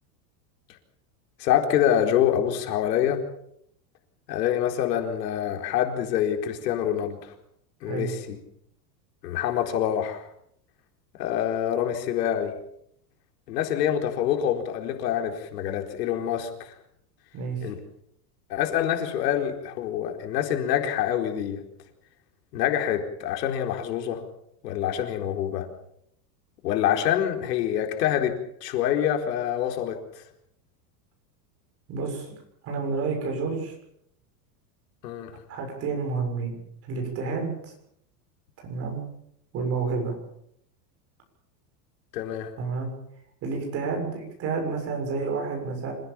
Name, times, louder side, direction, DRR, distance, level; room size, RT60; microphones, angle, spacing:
voice 1, 1.4-3.2 4.3-7.3 7.8-8.4 9.2-10.3 11.2-12.5 13.5-16.7 17.6-17.8 18.5-21.6 22.5-24.2 24.6-25.7 26.6-30.2 35.0-35.3 42.1-42.5, left 10 dB, 85° left, 4 dB, 4.3 m, -26 dB
voice 2, 17.3-17.7 31.9-32.3 32.6-33.7 35.5-36.6 36.9-37.7 38.6-39.0 39.5-40.2 42.6-42.9 43.4-45.9, right 4 dB, 30° right, 2 dB, 7.1 m, -29 dB
26.5 x 16.5 x 7.2 m, 0.73 s
supercardioid pair, 170°, 48 cm